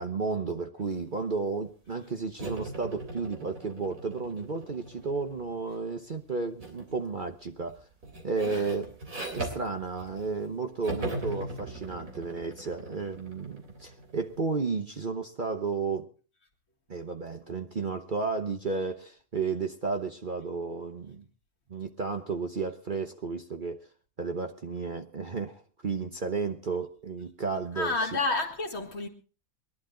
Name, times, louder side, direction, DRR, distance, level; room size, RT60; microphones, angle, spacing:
voice 1, 0.0-7.8 8.2-8.9 9.3-16.1 16.9-21.2 21.7-23.9 24.2-27.9, right 4 dB, 40° right, 1.0 m, -33 dB
sound 1, 2.4-5.7 6.6-6.9 7.3-10.5 10.8-14.4, right 2 dB, 65° right, 3.8 m, -39 dB
voice 2, 27.7-29.1, left 3 dB, 50° left, 2.2 m, -30 dB
22.0 x 11.5 x 3.9 m
omnidirectional pair, 1.5 m